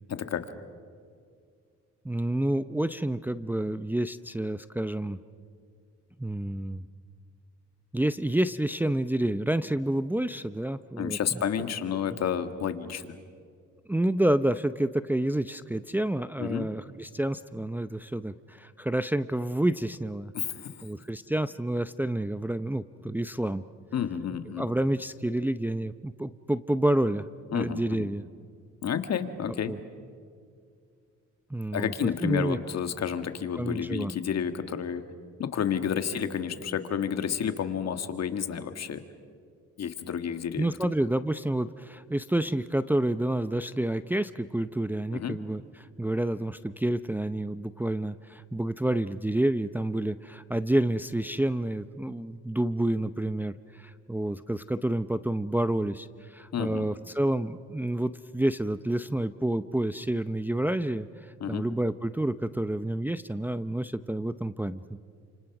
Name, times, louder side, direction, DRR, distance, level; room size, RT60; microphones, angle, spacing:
voice 1, 0.1-0.5 11.0-13.1 16.4-16.7 20.3-20.8 23.9-24.6 27.5-28.1 28.8-29.7 31.7-35.0 35.4-39.0 39.8-40.7 45.1-45.4 56.5-56.8 61.4-61.6, left 8 dB, 60° left, 9 dB, 1.8 m, -30 dB
voice 2, 2.0-5.2 6.2-6.9 7.9-11.2 13.9-20.3 20.8-23.6 24.6-27.2 27.5-28.3 29.7-29.8 31.5-32.6 33.5-34.1 40.6-65.0, right 1 dB, 5° right, 11 dB, 0.6 m, -29 dB
29.5 x 27.0 x 6.0 m, 2.2 s
cardioid pair, 90°, 30 cm